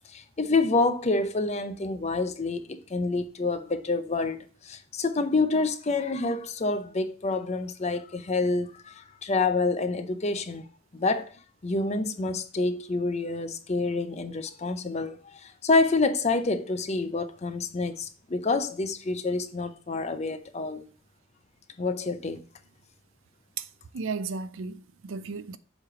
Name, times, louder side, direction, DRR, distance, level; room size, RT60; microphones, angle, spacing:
voice 1, 0.1-10.6 10.9-11.4 11.6-20.9 21.8-22.4, left 3 dB, 35° left, 0.6 m, -27 dB
voice 2, 23.9-25.6, right 4 dB, 80° right, 0.5 m, -34 dB
7.3 x 3.3 x 4.9 m
head